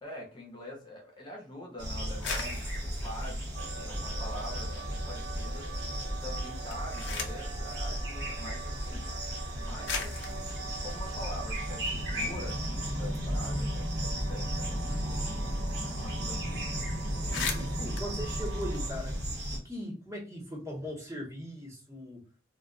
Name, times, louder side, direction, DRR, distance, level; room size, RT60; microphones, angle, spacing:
voice 1, 0.0-5.7 6.1-9.1 9.5-16.7 17.3-17.4 17.9-18.1, left 1 dB, 25° left, -1 dB, 0.6 m, -45 dB
sound 1, 1.8-19.6, equal, 70° right, 0.9 m, -34 dB
sound 2, 2.1-4.6 5.0-5.7 6.5-7.6 8.6-8.7 9.4-9.5 9.8-12.2 12.5-12.6 12.9-15.5 15.8-15.9 16.2-16.4 16.8-16.9 17.1-19.3, left 5 dB, 80° left, 0.5 m, -41 dB
sound 3, 3.6-18.9, right 6 dB, 85° right, 0.4 m, -45 dB
voice 2, 14.9-15.3 16.5-16.6 17.3-19.1 19.6-22.2, equal, 15° right, -2 dB, 0.8 m, -40 dB
2.2 x 2.1 x 3.6 m, 0.36 s
head